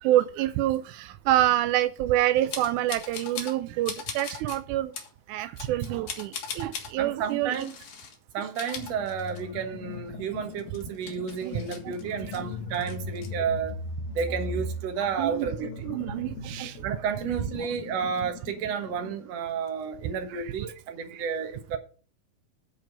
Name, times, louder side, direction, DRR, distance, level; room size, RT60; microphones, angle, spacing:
voice 1, 0.0-4.9 5.3-7.6 11.4-12.0 12.2-12.5 15.2-15.5 15.8-16.9 17.6-17.7 20.3-20.5 21.1-21.2, right 14 dB, 85° right, 1.7 m, -27 dB
sound 1, 2.5-3.6 3.9-4.6 4.9-5.1 5.6-6.9 7.5-8.2 8.5-9.7 10.0-10.1 10.5-12.4 12.7-13.3, left 6 dB, 60° left, 2.8 m, -39 dB
voice 2, 7.0-7.7 8.3-13.8 14.1-15.9 16.8-21.8, right 7 dB, 55° right, 2.1 m, -31 dB
sound 2, 8.8-19.2, left 3 dB, 90° left, 2.7 m, -39 dB
9.2 x 5.1 x 7.3 m
omnidirectional pair, 4.1 m